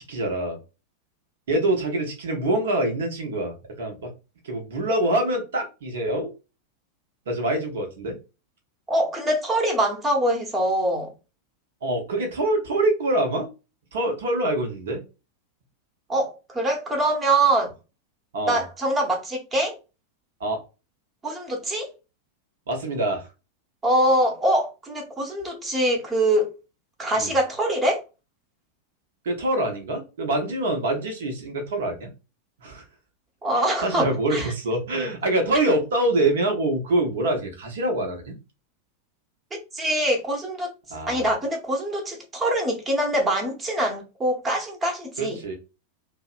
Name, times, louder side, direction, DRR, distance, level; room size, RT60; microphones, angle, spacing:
voice 1, 0.1-0.6 1.5-4.1 4.4-6.3 7.3-8.2 11.8-13.5 13.9-15.0 18.3-18.6 20.4-20.6 22.7-23.3 27.1-27.3 29.2-32.1 32.6-32.8 33.5-38.4 40.9-41.3 45.2-45.5, right 1 dB, 60° right, 0.8 m, -25 dB
voice 2, 8.9-11.1 16.1-17.7 18.5-19.8 21.2-21.9 23.8-26.5 27.0-28.0 33.4-34.5 39.5-40.7 41.1-45.4, right 1 dB, 20° right, 0.9 m, -24 dB
2.7 x 2.1 x 2.4 m
figure-of-eight pair, 90°, 0 cm